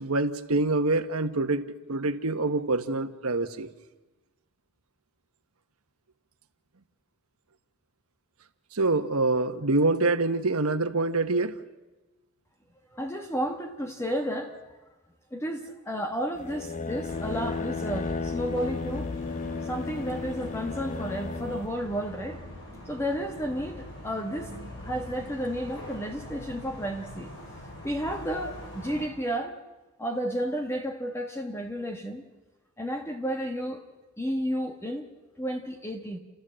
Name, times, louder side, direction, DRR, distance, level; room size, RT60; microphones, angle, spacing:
voice 1, 0.0-3.7 8.7-11.5, right 2 dB, 80° right, 7 dB, 1.2 m, -26 dB
voice 2, 12.9-14.5 15.3-19.1 19.6-22.5 22.8-24.5 24.8-27.3 27.8-29.6 30.0-32.2 32.8-33.8 34.2-35.1 35.4-36.2, equal, 10° left, 2 dB, 1.3 m, -32 dB
sound 1, 16.4-21.7, left 4 dB, 35° left, 0.7 m, -34 dB
sound 2, 17.1-29.1, left 1 dB, 60° left, 6.2 m, -42 dB
30.0 x 14.0 x 7.6 m, 1.1 s
head